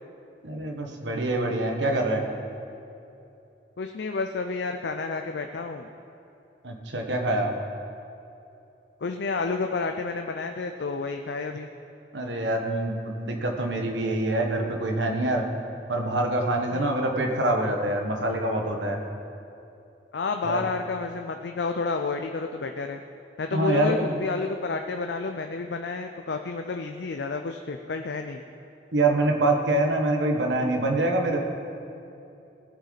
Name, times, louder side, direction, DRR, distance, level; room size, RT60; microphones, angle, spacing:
voice 1, 0.4-2.2 6.6-7.5 12.1-15.5 15.9-19.0 20.4-20.6 23.5-24.0 28.9-31.4, right 2 dB, 85° right, 2 dB, 1.5 m, -25 dB
voice 2, 3.8-5.9 9.0-11.7 16.7-16.9 20.1-23.0 23.4-28.4, left 4 dB, 65° left, 5 dB, 0.5 m, -30 dB
18.0 x 8.1 x 4.1 m, 2.8 s
head